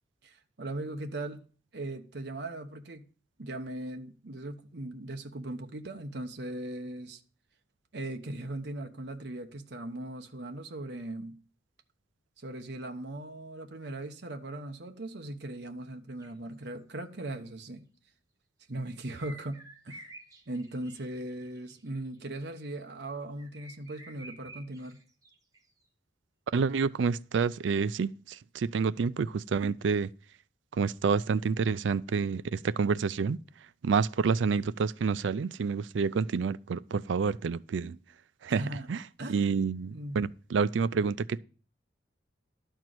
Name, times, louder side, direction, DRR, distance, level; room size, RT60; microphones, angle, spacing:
voice 1, 0.2-1.4 1.7-3.1 3.4-7.2 7.9-11.4 12.4-17.9 18.7-20.0 20.5-25.0 38.5-38.9 39.2-39.6 39.9-40.3, right 1 dB, 60° right, 1.0 m, -39 dB
sound 1, 16.2-16.3 19.2-22.2 22.4-22.8 23.4-25.6 27.0-27.1, right 2 dB, 20° right, 1.4 m, -51 dB
voice 2, 26.5-30.1 30.7-33.4 33.8-38.0 38.4-38.6 38.9-39.0 39.3-41.4, right 5 dB, 75° right, 0.4 m, -28 dB
12.0 x 4.5 x 7.7 m
head